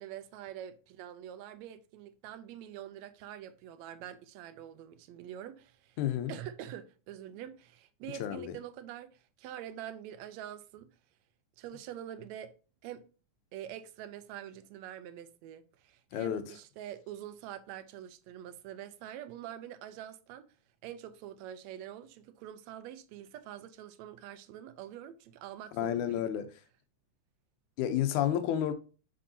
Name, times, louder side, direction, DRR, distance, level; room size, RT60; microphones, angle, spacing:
voice 1, 0.0-6.0 6.3-10.9 11.6-12.5 12.8-13.1 13.5-20.5 20.8-26.3, right 11 dB, 80° right, 1.8 m, -45 dB
voice 2, 6.0-6.3 8.2-8.5 16.1-16.4 25.7-26.5 27.8-28.7, left 10 dB, 80° left, 2.2 m, -30 dB
6.3 x 5.8 x 2.7 m
omnidirectional pair, 3.4 m